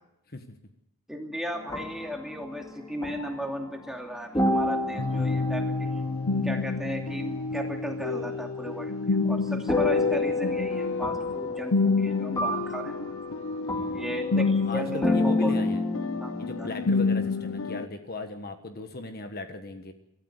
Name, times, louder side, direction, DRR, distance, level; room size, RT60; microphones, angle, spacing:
voice 1, 1.1-5.9 6.4-13.1 13.9-15.6 16.2-16.3 16.6-16.7, equal, ahead, 1 dB, 2.7 m, -35 dB
sound 1, 1.5-4.0 4.3-7.5 9.7-17.9, left 2 dB, 15° left, 2.7 m, -30 dB
voice 2, 4.9-5.5 13.6-14.2 14.7-15.8 16.4-19.9, left 2 dB, 45° left, 7 dB, 1.4 m, -38 dB
sound 2, 5.0-17.9, left 4 dB, 80° left, 0.7 m, -29 dB
24.5 x 13.5 x 8.1 m, 0.85 s
head